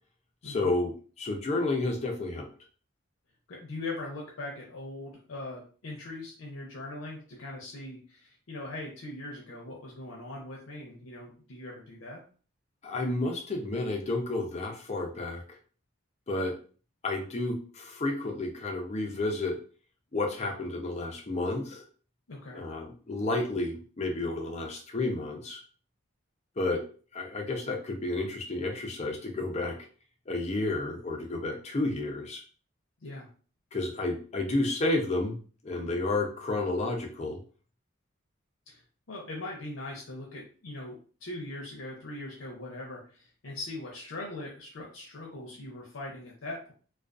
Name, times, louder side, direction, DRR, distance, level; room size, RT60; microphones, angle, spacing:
voice 1, 0.4-2.5 12.8-15.4 16.3-16.5 17.0-19.6 20.1-21.8 22.5-25.6 26.6-26.8 27.1-29.8 30.3-32.4 33.7-35.4 35.6-37.4, left 2 dB, 30° left, 2 dB, 0.5 m, -31 dB
voice 2, 3.5-12.2 22.3-22.6 33.0-33.3 38.7-38.8 39.1-46.7, left 2 dB, 75° left, -2 dB, 0.6 m, -41 dB
2.4 x 2.3 x 2.4 m, 0.40 s
head